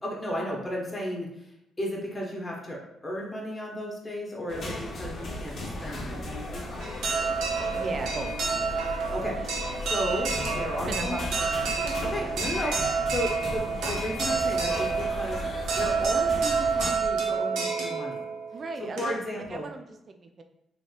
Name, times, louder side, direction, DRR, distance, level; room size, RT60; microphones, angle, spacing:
voice 1, 0.0-1.5 1.8-6.3 8.8-9.4 9.8-11.2 12.0-18.3 18.8-19.7, equal, 15° left, -2 dB, 0.7 m, -34 dB
sound 1, 4.5-16.9, left 1 dB, 55° left, 0.7 m, -37 dB
sound 2, 5.1-17.1, left 3 dB, 85° left, 1.0 m, -41 dB
sound 3, 6.8-19.4, right 5 dB, 85° right, 0.6 m, -29 dB
voice 2, 7.7-8.3 10.9-12.3 18.5-19.2 19.5-20.4, right 3 dB, 45° right, 5 dB, 0.4 m, -38 dB
2.9 x 2.9 x 2.3 m, 0.84 s
cardioid pair, 90°, 0 cm